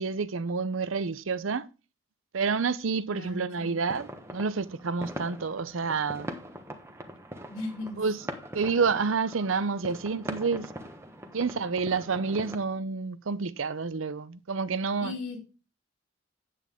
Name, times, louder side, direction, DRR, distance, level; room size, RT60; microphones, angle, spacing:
voice 1, 0.0-1.7 2.3-6.3 8.0-8.2 8.5-10.7 11.3-15.2, right 4 dB, 90° right, 0.7 m, -29 dB
voice 2, 3.1-3.7 7.5-8.0 15.0-15.4, left 2 dB, 85° left, 3.4 m, -37 dB
sound 1, 3.6-12.6, equal, 15° right, 1.2 m, -42 dB
9.2 x 8.4 x 3.6 m
head